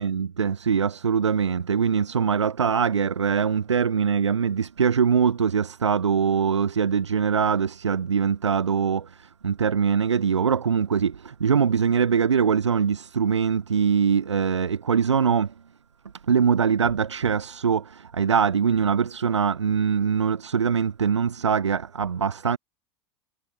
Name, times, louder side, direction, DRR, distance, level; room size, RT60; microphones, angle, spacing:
voice 1, 0.0-15.5 16.3-22.6, right 6 dB, 85° right, 4.2 m, -23 dB
figure-of-eight pair, 85°, 15 cm